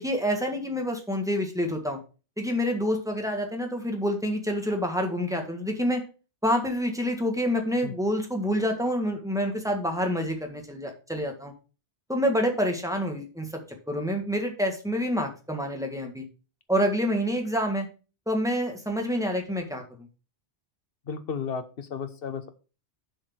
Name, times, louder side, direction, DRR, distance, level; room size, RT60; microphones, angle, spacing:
voice 1, 0.0-2.0 2.4-6.0 6.4-11.5 12.1-13.6 13.9-16.2 16.7-17.9 18.2-19.8, equal, 5° right, 3 dB, 1.7 m, -27 dB
voice 2, 21.1-22.5, left 6 dB, 60° left, 9 dB, 1.2 m, -33 dB
7.3 x 4.8 x 6.1 m, 0.34 s
omnidirectional pair, 1.1 m